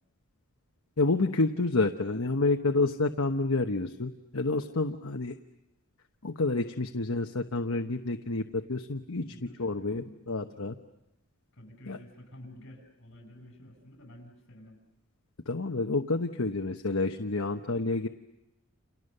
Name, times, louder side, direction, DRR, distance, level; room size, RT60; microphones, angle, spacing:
voice 1, 1.0-5.4 6.2-9.3 9.6-10.7 11.9-12.0 15.5-18.1, left 3 dB, 70° left, 4 dB, 1.1 m, -29 dB
voice 2, 9.2-10.2 11.5-14.8, left 1 dB, 55° left, 7 dB, 6.9 m, -51 dB
29.5 x 29.5 x 6.7 m, 0.89 s
head